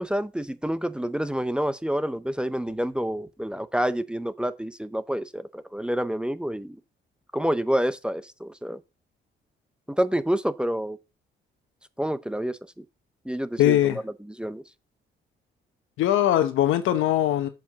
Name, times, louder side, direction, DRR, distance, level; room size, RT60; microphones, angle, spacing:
voice 1, 0.0-6.8 7.3-8.8 9.9-11.0 12.0-12.8 13.3-13.8 14.4-14.6, equal, 5° right, 0.6 m, -28 dB
voice 2, 13.6-14.0 16.0-17.5, left 12 dB, 85° left, 0.9 m, -21 dB
7.3 x 4.7 x 7.1 m
cardioid pair, 90°, 20 cm